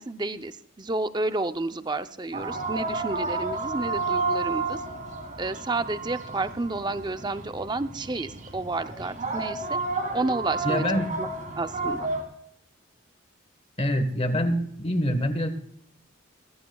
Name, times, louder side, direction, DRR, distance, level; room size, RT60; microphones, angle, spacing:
voice 1, 0.0-4.8 5.4-9.8 10.1-11.3 11.6-12.1, right 2 dB, 20° right, 10 dB, 0.6 m, -31 dB
sound 1, 2.3-12.2, right 3 dB, 40° right, 2.5 m, -31 dB
voice 2, 10.6-11.2 13.8-15.5, equal, 30° left, 9 dB, 1.3 m, -25 dB
21.5 x 14.5 x 2.3 m, 0.72 s
head